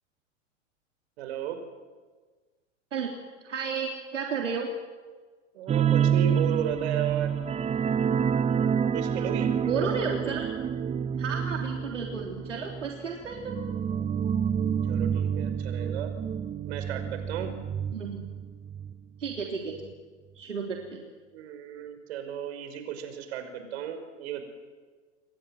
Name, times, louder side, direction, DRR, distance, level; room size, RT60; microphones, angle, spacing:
voice 1, 1.2-1.6 5.5-7.3 8.9-9.5 14.8-16.1 16.7-17.5 20.9-21.1 21.3-24.5, right 9 dB, 60° right, 8 dB, 5.6 m, -34 dB
voice 2, 3.4-4.7 9.7-10.5 11.2-13.6 17.9-18.2 19.2-19.9 20.4-21.0, right 5 dB, 80° right, 1 dB, 3.5 m, -32 dB
sound 1, 5.7-18.9 19.2-19.4 19.8-19.9, right 8 dB, 15° right, 0.9 m, -28 dB
29.0 x 23.5 x 7.9 m, 1.4 s
figure-of-eight pair, 95°, 37 cm